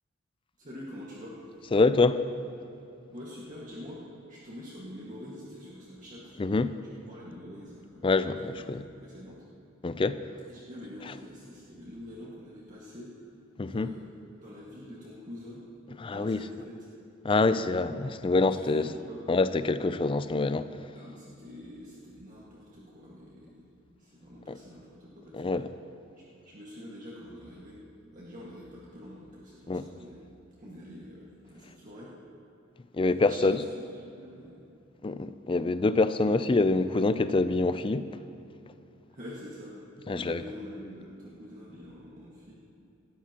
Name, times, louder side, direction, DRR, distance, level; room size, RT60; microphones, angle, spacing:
voice 1, 0.6-1.5 3.1-6.3 7.1-8.1 8.4-9.4 10.5-13.1 13.7-14.1 14.4-15.6 16.1-16.9 18.5-19.2 20.9-23.7 24.0-25.6 26.4-27.8 28.1-30.2 30.6-32.1 33.3-33.6 34.0-34.6 39.1-39.8 40.1-42.5, left 1 dB, 40° right, -6 dB, 1.7 m, -45 dB
voice 2, 1.7-2.2 6.4-6.7 8.0-8.8 9.8-10.2 13.6-13.9 16.0-16.4 17.2-18.9 19.3-20.7 24.5-24.6 25.3-25.7 29.7-29.8 32.9-33.6 35.0-38.1 40.1-40.4, left 3 dB, 25° left, 12 dB, 0.4 m, -25 dB
19.0 x 13.5 x 2.9 m, 2.7 s
head